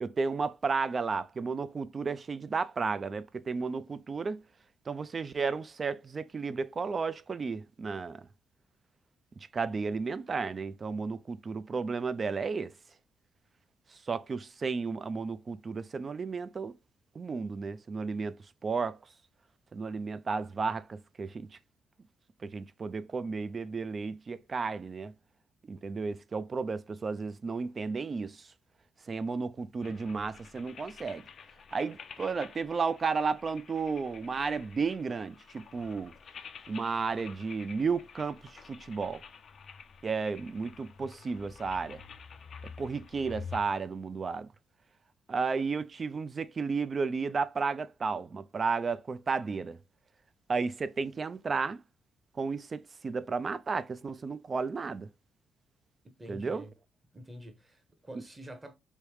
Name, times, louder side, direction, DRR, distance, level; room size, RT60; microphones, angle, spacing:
voice 1, 0.0-4.4 4.9-8.3 9.5-12.7 14.1-16.7 17.2-19.0 19.7-21.5 22.4-25.1 25.7-28.5 29.1-31.2 31.7-36.1 36.7-39.2 40.0-42.0 42.8-44.5 45.3-49.8 50.5-51.8 52.4-55.1 56.3-56.6, right 4 dB, 35° right, 0.3 m, -33 dB
sound 1, 29.8-43.6, left 6 dB, 55° left, 0.4 m, -49 dB
voice 2, 56.2-56.7 57.1-58.8, equal, 20° right, 0.9 m, -47 dB
3.2 x 2.7 x 3.2 m
cardioid pair, 90°, 0 cm